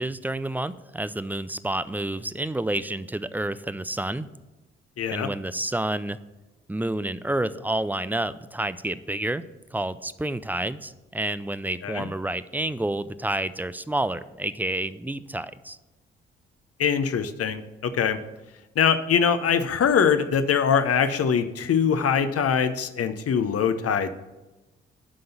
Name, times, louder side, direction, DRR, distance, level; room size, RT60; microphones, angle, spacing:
voice 1, 0.0-4.3 5.1-6.2 6.7-9.4 9.7-15.8, right 1 dB, 5° right, 15 dB, 0.5 m, -29 dB
voice 2, 5.0-5.3 11.8-12.1 16.8-18.2 18.8-24.1, left 7 dB, 55° left, 10 dB, 0.8 m, -23 dB
11.5 x 3.8 x 7.0 m, 1.1 s
hypercardioid pair, 40°, 29 cm